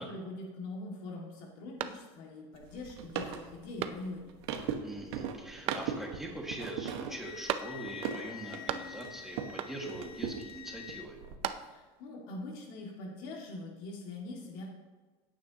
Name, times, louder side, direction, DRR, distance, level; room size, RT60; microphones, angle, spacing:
voice 1, 0.0-4.4 11.6-14.6, left 2 dB, 65° left, -1 dB, 2.1 m, -43 dB
sound 1, 1.8-2.5 2.9-3.0 3.8-4.4 5.7-6.3 7.5-8.1 8.3-9.2 9.6-10.1 11.1-12.0, right 10 dB, 45° right, 0.6 m, -38 dB
sound 2, 2.5-9.6 9.9-11.4, right 7 dB, 90° right, 1.4 m, -40 dB
voice 2, 4.8-11.2, right 1 dB, 5° right, -1 dB, 1.8 m, -42 dB
Wind instrument woodwind instrument, 7.2-11.1, left 10 dB, 40° left, 0.6 m, -47 dB
16.5 x 9.0 x 2.9 m, 1.3 s
cardioid pair, 155°, 13 cm